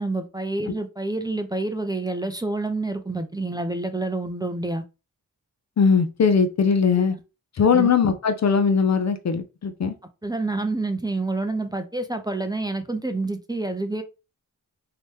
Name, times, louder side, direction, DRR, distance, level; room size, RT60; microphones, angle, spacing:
voice 1, 0.0-4.8 6.9-7.0 7.7-7.9 10.2-14.0, right 2 dB, 10° right, 0.5 m, -28 dB
voice 2, 5.8-7.2 7.6-9.9, left 6 dB, 50° left, 0.5 m, -20 dB
2.8 x 2.1 x 3.2 m
cardioid pair, 50°, 36 cm